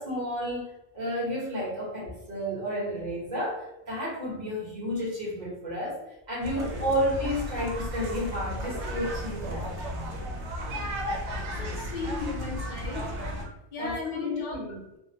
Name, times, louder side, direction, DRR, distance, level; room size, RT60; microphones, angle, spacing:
voice 1, 0.0-6.0 6.3-9.7 13.4-13.5 13.8-14.9, equal, 40° right, -6 dB, 1.2 m, -31 dB
sound 1, 6.4-13.4, equal, 85° right, 0.9 m, -34 dB
voice 2, 11.6-13.3 13.7-14.6, left 3 dB, 55° left, -1 dB, 0.7 m, -35 dB
2.8 x 2.0 x 2.7 m, 0.89 s
omnidirectional pair, 1.2 m